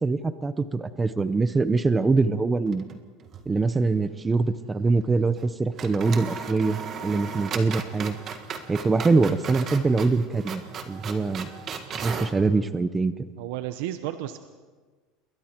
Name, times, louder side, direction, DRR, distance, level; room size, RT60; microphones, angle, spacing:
voice 1, 0.0-2.8 3.5-8.2 8.7-11.5 12.0-13.3, right 3 dB, 15° right, 12 dB, 0.7 m, -24 dB
sound 1, 2.7-3.5 3.8-3.9 5.3-5.5 5.8-12.4, right 6 dB, 35° right, 1.7 m, -36 dB
voice 2, 13.4-14.4, right 13 dB, 75° right, 9 dB, 1.0 m, -32 dB
28.0 x 22.0 x 4.5 m, 1.4 s
supercardioid pair, 145°, 0 cm